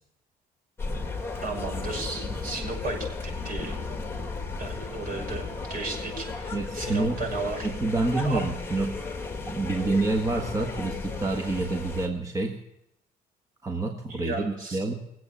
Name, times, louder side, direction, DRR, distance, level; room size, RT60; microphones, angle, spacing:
sound 1, 0.8-12.1, left 3 dB, 15° left, 2.0 m, -34 dB
voice 1, 1.4-3.0 3.4-3.9 4.6-7.6 8.2-8.4 14.1-14.8, right 3 dB, 55° right, 1 dB, 6.2 m, -34 dB
voice 2, 6.5-7.2 7.6-9.0 9.4-12.5 13.6-14.9, right 2 dB, 20° right, 3 dB, 1.3 m, -28 dB
22.0 x 8.0 x 7.0 m, 0.83 s
cardioid pair, 110°, 17 cm